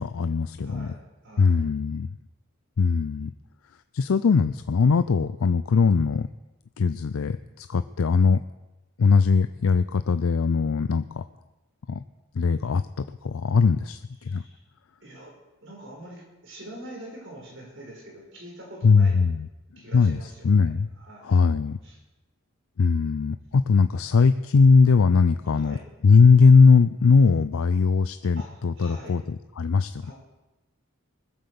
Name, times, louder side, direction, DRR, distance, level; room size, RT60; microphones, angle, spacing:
voice 1, 0.0-0.9 1.4-2.1 2.8-3.3 3.9-6.3 6.8-8.4 9.0-11.2 11.9-12.0 12.3-14.4 18.8-19.5 19.9-20.2 20.4-20.9 21.2-21.8 22.8-25.8 26.0-30.1, left 5 dB, 75° left, 11 dB, 0.4 m, -20 dB
voice 2, 0.6-1.7 14.2-14.6 15.0-15.3 15.6-19.2 19.8-20.7 21.0-21.4 21.8-22.0 25.5-25.8 28.4-29.2 30.0-30.1, right 1 dB, 55° right, -1 dB, 5.5 m, -44 dB
21.0 x 8.0 x 6.9 m, 1.0 s
head